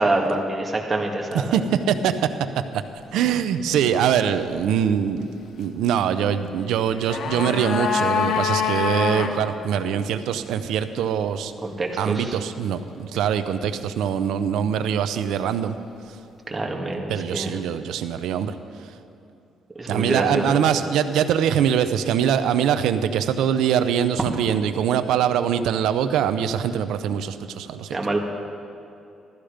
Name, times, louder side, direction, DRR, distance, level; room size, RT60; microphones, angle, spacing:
voice 1, 0.0-1.6 11.6-12.4 16.5-17.6 19.8-20.6 27.9-28.2, right 2 dB, 25° right, 1 dB, 2.1 m, -25 dB
voice 2, 1.5-2.3 3.1-5.3 5.6-11.5 12.0-15.7 17.1-18.5 19.9-27.9, right 8 dB, 85° right, 11 dB, 0.7 m, -23 dB
sound 1, 6.7-9.3 9.6-9.7, left 6 dB, 65° left, 1.4 m, -24 dB
15.5 x 13.5 x 5.1 m, 2.8 s
cardioid pair, 90°, 0 cm